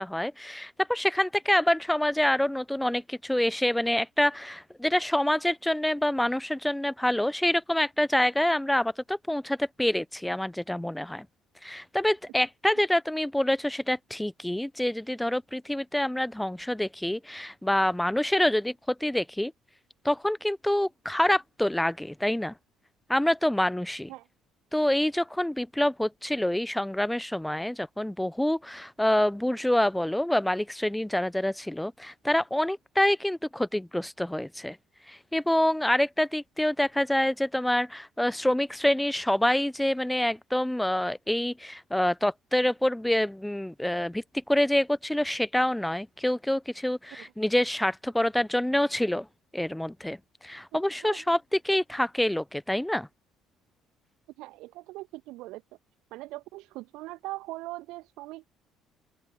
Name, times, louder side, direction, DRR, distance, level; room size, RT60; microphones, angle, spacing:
voice 1, 0.0-11.3 11.6-19.5 20.0-22.5 23.1-24.1 24.7-34.8 35.1-49.3 49.5-53.1, left 1 dB, 5° left, 1.1 m, -26 dB
voice 2, 54.4-55.6 56.1-58.5, right 19 dB, 60° right, 1.9 m, -40 dB
open air
figure-of-eight pair, 50°, 0 cm